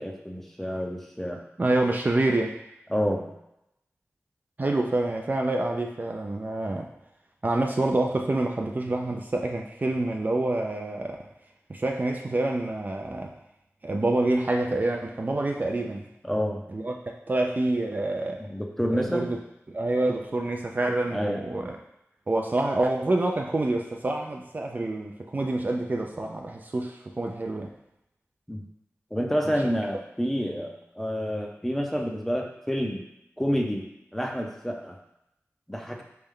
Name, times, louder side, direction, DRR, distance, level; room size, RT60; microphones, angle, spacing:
voice 1, 0.0-1.4 2.9-3.3 16.2-16.6 18.5-19.2 21.1-21.4 28.5-28.6 29.1-33.0 33.4-33.9 34.1-35.0 35.7-36.0, equal, 5° left, 2 dB, 0.6 m, -28 dB
voice 2, 1.6-2.6 4.6-6.9 7.4-11.2 11.7-13.3 13.8-16.1 16.7-16.9 17.3-18.4 18.9-19.4 19.7-21.8 22.3-27.7, right 2 dB, 40° right, 2 dB, 0.4 m, -27 dB
4.0 x 3.4 x 3.7 m, 0.83 s
wide cardioid pair, 75°, 5 cm